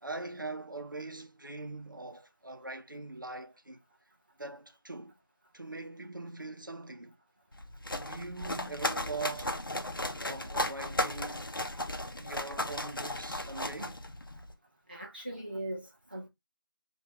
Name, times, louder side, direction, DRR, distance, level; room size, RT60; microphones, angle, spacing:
voice 1, 0.0-3.8 4.4-5.1 5.5-7.2 8.0-9.5 10.3-11.5 12.2-14.0, right 3 dB, 60° right, 0.8 m, -42 dB
sound 1, 7.5-14.5, left 1 dB, 65° left, 0.7 m, -35 dB
voice 2, 14.9-16.3, right 1 dB, 25° right, 0.6 m, -40 dB
4.4 x 2.6 x 2.2 m
figure-of-eight pair, 175°, 12 cm